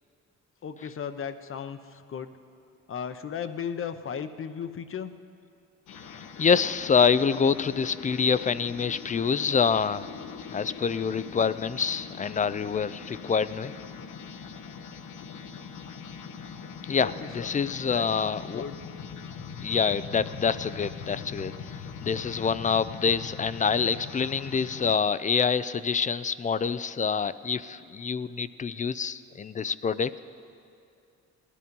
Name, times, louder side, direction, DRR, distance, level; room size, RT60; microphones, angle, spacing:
voice 1, 0.6-2.3 2.9-5.1 17.0-17.5 17.8-18.8, left 7 dB, 45° left, 10 dB, 0.8 m, -36 dB
sound 1, 5.9-25.0, left 6 dB, 75° left, 1.1 m, -42 dB
voice 2, 6.1-10.1 10.5-13.7 16.9-18.6 19.6-30.1, left 6 dB, 25° left, 16 dB, 0.4 m, -26 dB
18.5 x 11.0 x 5.3 m, 2.4 s
cardioid pair, 90°, 30 cm